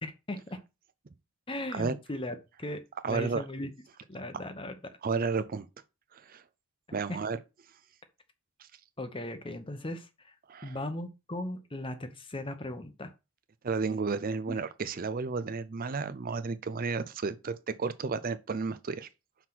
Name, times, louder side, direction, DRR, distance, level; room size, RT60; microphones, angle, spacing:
voice 1, 0.0-0.6 1.5-3.7 4.1-4.7 7.1-7.2 9.0-10.3 10.6-13.1 14.5-14.6, left 1 dB, 25° left, 0.9 m, -38 dB
voice 2, 3.0-3.4 5.0-5.7 6.1-6.4 6.9-7.4 8.6-8.7 10.5-10.8 13.6-19.1, right 4 dB, 40° right, 0.5 m, -32 dB
5.8 x 4.6 x 5.9 m
head